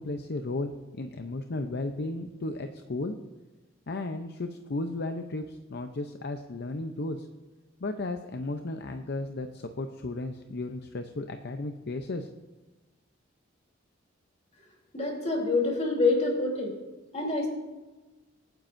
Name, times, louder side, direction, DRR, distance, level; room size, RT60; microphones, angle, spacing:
voice 1, 0.0-3.2 3.9-7.3 7.8-12.3, left 2 dB, 55° left, 6 dB, 0.7 m, -34 dB
voice 2, 14.9-16.7 17.1-17.5, left 3 dB, 35° left, -1 dB, 3.3 m, -26 dB
24.0 x 9.4 x 2.6 m, 1.2 s
head